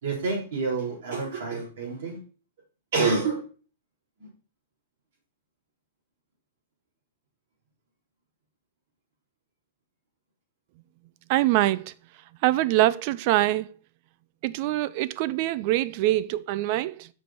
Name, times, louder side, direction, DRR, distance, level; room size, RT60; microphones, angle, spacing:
voice 1, 0.0-2.2 2.9-3.4 4.2-4.3, right 4 dB, 70° right, 4.0 m, -27 dB
voice 2, 11.3-11.9 12.4-13.7 14.4-17.1, right 16 dB, 50° right, 0.4 m, -24 dB
6.3 x 5.2 x 4.3 m
hypercardioid pair, 135°, 0 cm